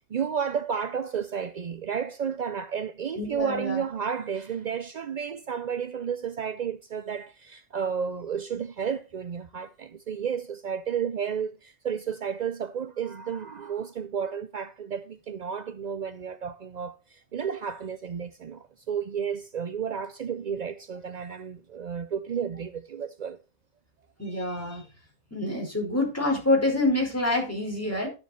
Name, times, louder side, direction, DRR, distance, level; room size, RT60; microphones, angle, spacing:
voice 1, 0.1-23.4, right 7 dB, 65° right, 0.4 m, -32 dB
voice 2, 3.1-3.8 24.2-24.8 25.3-28.1, left 2 dB, 10° left, 4.9 m, -26 dB
11.5 x 7.4 x 4.3 m
omnidirectional pair, 1.4 m